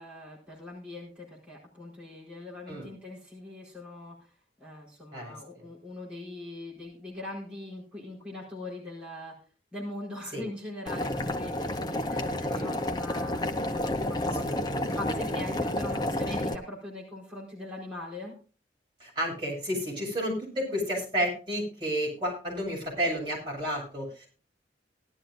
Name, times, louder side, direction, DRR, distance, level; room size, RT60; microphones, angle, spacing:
voice 1, 0.0-4.3 4.6-9.4 9.7-18.4, left 1 dB, 5° right, -6 dB, 4.4 m, -41 dB
Boiling, 10.9-16.5, left 1 dB, 25° left, 0.8 m, -30 dB
voice 2, 14.4-15.0 19.0-24.3, equal, 25° right, -3 dB, 6.9 m, -31 dB
18.0 x 12.0 x 2.6 m, 0.37 s
head